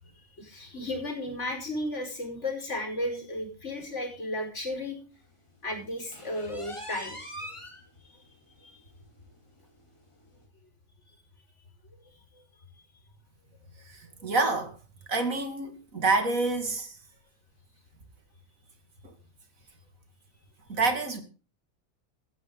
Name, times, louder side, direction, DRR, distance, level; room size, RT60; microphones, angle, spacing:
voice 1, 0.4-5.0 5.6-7.2 8.1-8.2 8.6-8.8 12.1-12.2, left 1 dB, 60° left, 5.3 m, -34 dB
sound 1, 6.1-7.8 8.3-8.4 8.8-8.9 9.3-9.4 10.3-10.4, equal, 20° left, 3.9 m, -42 dB
voice 2, 13.8-14.8 15.1-17.0 19.0-19.1 20.7-21.2, right 3 dB, 80° right, 2.8 m, -27 dB
16.0 x 14.5 x 3.9 m
omnidirectional pair, 1.4 m